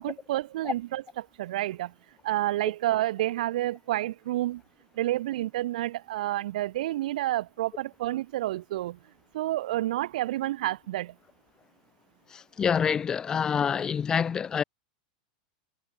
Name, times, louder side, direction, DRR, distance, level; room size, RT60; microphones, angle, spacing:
voice 1, 0.0-1.9 2.2-4.6 4.9-9.0 9.3-11.1, right 15 dB, 65° right, 2.6 m, -29 dB
voice 2, 12.3-14.6, left 7 dB, 15° left, 2.1 m, -27 dB
supercardioid pair, 165°, 4 cm